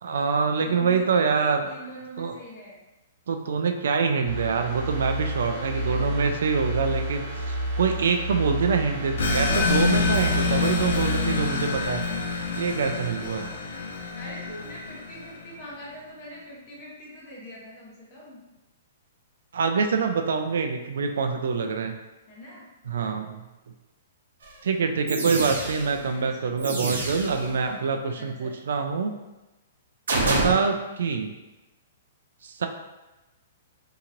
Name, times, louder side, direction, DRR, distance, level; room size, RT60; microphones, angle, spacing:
voice 1, 0.0-1.6 2.2-2.4 3.3-12.0 12.5-13.5 19.5-22.0 22.9-23.4 24.6-29.1 30.1-31.3 32.4-32.7, right 5 dB, 65° right, 5 dB, 0.3 m, -25 dB
voice 2, 0.5-2.8 5.5-6.4 8.9-9.6 14.1-18.4 22.3-22.6 26.1-26.6 27.3-27.8 28.2-28.6, equal, 25° left, -5 dB, 0.8 m, -43 dB
sound 1, 4.2-12.9 13.3-13.4, right 1 dB, 45° right, 1.2 m, -31 dB
sound 2, 9.2-15.4, left 4 dB, 75° left, 0.4 m, -27 dB
sound 3, 24.4-24.5 25.1-26.0 26.6-27.5 30.1-30.5, right 2 dB, 90° right, 0.7 m, -27 dB
2.9 x 2.8 x 2.5 m, 1.1 s
hypercardioid pair, 175°, 0 cm